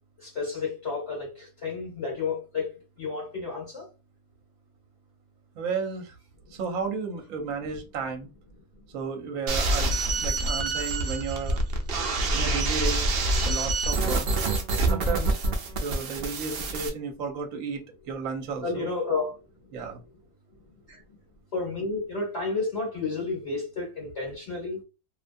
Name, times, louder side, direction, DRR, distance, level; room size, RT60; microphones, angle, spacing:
voice 1, 0.2-2.7 3.0-3.9 18.6-19.3 20.9-21.0 21.5-24.8, left 4 dB, 50° left, 1.2 m, -31 dB
voice 2, 5.6-6.1 6.5-8.3 8.9-11.6 12.3-13.1 13.4-14.3 14.9-15.4 15.8-18.9 19.7-20.0, right 5 dB, 65° right, 1.0 m, -33 dB
sound 1, 9.5-16.9, right 2 dB, 90° right, 0.5 m, -26 dB
2.6 x 2.2 x 2.5 m
omnidirectional pair, 1.6 m